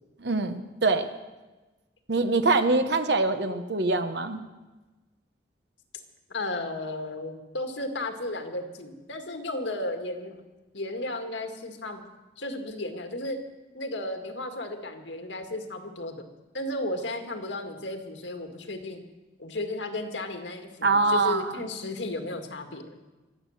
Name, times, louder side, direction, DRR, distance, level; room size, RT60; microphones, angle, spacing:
voice 1, 0.2-1.1 2.1-4.4 20.8-21.4, right 3 dB, 60° right, 9 dB, 1.0 m, -24 dB
voice 2, 6.3-10.4 10.7-12.0 12.4-13.4 13.7-16.2 16.5-19.0 19.4-23.0, left 2 dB, 75° left, 5 dB, 1.8 m, -34 dB
24.5 x 8.5 x 6.5 m, 1.2 s
head